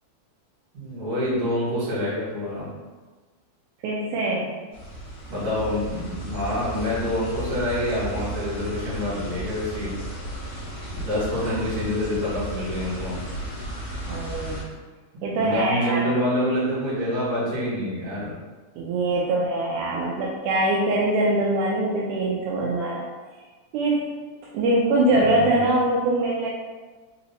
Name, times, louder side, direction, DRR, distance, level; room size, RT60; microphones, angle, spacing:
voice 1, 0.7-2.7 5.3-10.0 10.9-13.2 15.4-18.4 25.2-25.6, left 1 dB, 55° right, -9 dB, 2.6 m, -27 dB
voice 2, 3.8-4.5 11.3-11.5 14.1-14.6 15.2-16.1 18.8-23.0 23.7-24.1 24.5-26.5, right 2 dB, 85° right, -4 dB, 2.0 m, -23 dB
sound 1, 4.7-14.6, right 1 dB, 55° left, 1.9 m, -34 dB
4.9 x 2.8 x 2.7 m, 1.3 s
omnidirectional pair, 3.5 m